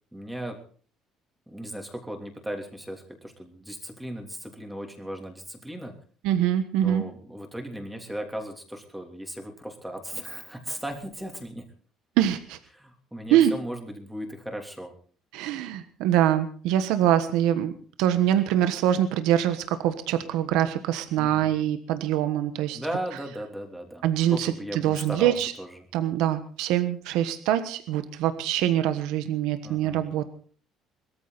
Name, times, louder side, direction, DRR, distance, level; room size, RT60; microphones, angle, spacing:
voice 1, 0.1-0.6 1.5-5.9 6.8-11.6 12.7-14.9 21.2-21.6 22.7-25.8 29.6-30.0, right 1 dB, 5° right, 3 dB, 3.1 m, -37 dB
voice 2, 6.2-7.0 12.2-12.6 13.3-13.5 15.3-17.7 18.0-22.8 24.0-25.5 25.9-30.3, right 11 dB, 90° right, 10 dB, 1.3 m, -24 dB
21.5 x 14.0 x 4.1 m, 0.43 s
cardioid pair, 150°, 0 cm